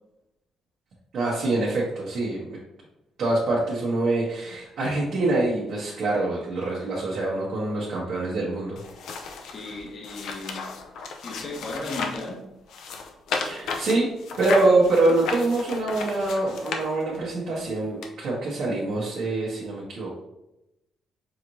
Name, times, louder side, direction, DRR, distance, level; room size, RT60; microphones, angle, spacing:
voice 1, 1.1-2.6 3.2-8.8 13.4-14.1 14.4-20.2, right 2 dB, 65° right, -6 dB, 1.0 m, -25 dB
sound 1, 8.8-12.3 12.7-17.3 18.0-18.1, left 4 dB, 80° left, 0.5 m, -34 dB
voice 2, 9.4-10.6 11.2-12.4, left 2 dB, 50° left, -1 dB, 0.8 m, -35 dB
4.9 x 3.1 x 2.6 m, 0.92 s
cardioid pair, 90°, 0 cm